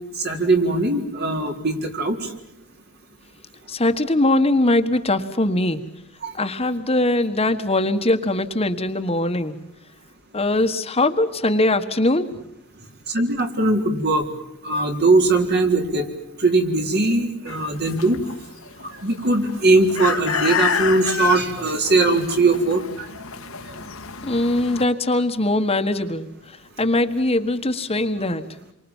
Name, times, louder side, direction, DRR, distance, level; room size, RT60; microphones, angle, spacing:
voice 1, 0.2-2.2 6.2-6.3 13.1-14.3 14.6-16.1 16.4-18.2 19.0-23.1, right 2 dB, 50° right, 4 dB, 3.9 m, -20 dB
voice 2, 3.7-5.8 6.3-9.6 10.3-12.3 24.2-26.3 26.8-28.4, left 2 dB, 30° left, 8 dB, 1.6 m, -21 dB
sound 1, 17.5-24.8, left 6 dB, 80° left, 1.8 m, -29 dB
28.5 x 24.5 x 7.3 m, 0.82 s
head